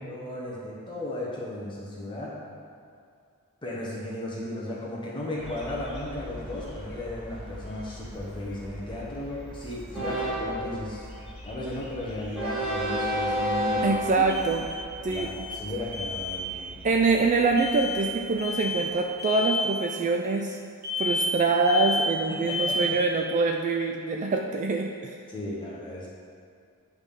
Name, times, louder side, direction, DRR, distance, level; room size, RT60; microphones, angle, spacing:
voice 1, 0.0-2.4 3.6-11.1 11.4-14.2 15.1-16.9 22.3-23.0 25.3-26.1, left 1 dB, 20° left, -5 dB, 0.9 m, -35 dB
Train, 5.4-18.4, equal, 5° right, 1.5 m, -34 dB
sound 1, 11.0-11.1 14.3-14.9 15.1-15.7 15.9-16.4 17.6-18.1 18.4-18.9 19.2-19.7 20.8-21.4 21.6-22.2 22.5-23.0, left 2 dB, 75° right, 1.5 m, -30 dB
voice 2, 13.8-14.7 15.0-15.3 16.8-20.6 21.0-25.1, right 3 dB, 35° right, 2 dB, 0.3 m, -25 dB
8.2 x 3.5 x 5.4 m, 2.3 s
head